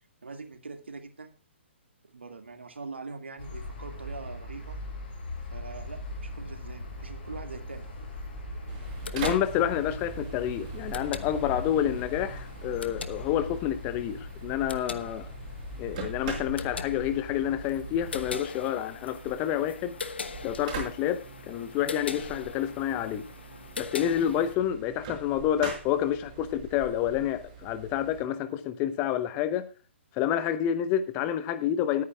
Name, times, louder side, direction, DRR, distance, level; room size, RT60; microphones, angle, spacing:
voice 1, 0.2-1.3 2.0-4.8 5.5-7.9, right 3 dB, 65° right, 2.1 m, -42 dB
sound 1, 3.4-18.3, left 2 dB, 45° left, 5.1 m, -40 dB
sound 2, 8.7-28.2, right 6 dB, 30° right, 5.4 m, -43 dB
sound 3, 8.8-24.6, left 5 dB, 60° left, 1.1 m, -43 dB
voice 2, 9.1-15.3 15.8-20.0 20.4-23.2 23.8-29.7 30.2-32.0, left 10 dB, 25° left, 0.9 m, -29 dB
19.5 x 9.5 x 2.4 m
figure-of-eight pair, 125°, 7 cm